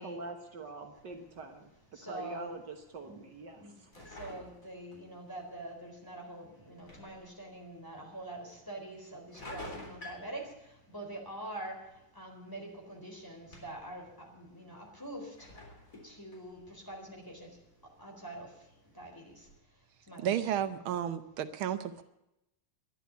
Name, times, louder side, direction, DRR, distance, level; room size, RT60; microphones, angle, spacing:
voice 1, 0.0-1.7 2.0-3.9, right 3 dB, 60° right, 5 dB, 1.9 m, -44 dB
sound 1, 0.9-19.6, left 1 dB, 40° left, 4.2 m, -54 dB
voice 2, 1.9-2.5 3.0-3.2 3.5-15.6 16.0-19.5 20.0-20.7, right 1 dB, 10° left, 0 dB, 4.0 m, -45 dB
voice 3, 20.2-22.0, right 10 dB, 90° right, 11 dB, 1.7 m, -32 dB
12.0 x 11.5 x 9.3 m, 0.88 s
omnidirectional pair, 2.2 m